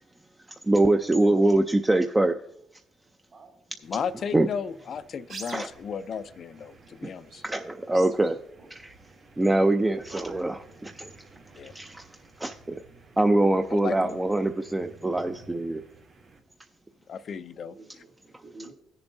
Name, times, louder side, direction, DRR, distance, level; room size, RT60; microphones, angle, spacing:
voice 1, 0.7-2.4 4.1-4.5 5.5-5.7 7.4-8.4 8.7-8.9 9.4-10.6 11.0-11.1 11.7-12.0 12.4-12.8 13.2-15.8, right 2 dB, 15° right, 0.4 m, -23 dB
voice 2, 3.8-7.4 11.6-11.7 13.7-14.2 17.1-17.8, left 7 dB, 60° left, 0.4 m, -34 dB
sound 1, 3.8-16.4, right 4 dB, 70° right, 1.7 m, -51 dB
voice 3, 8.0-8.7 10.1-10.5 15.5-15.9 17.7-18.7, right 3 dB, 45° right, 2.8 m, -48 dB
16.0 x 6.9 x 2.7 m
cardioid pair, 90°, 0 cm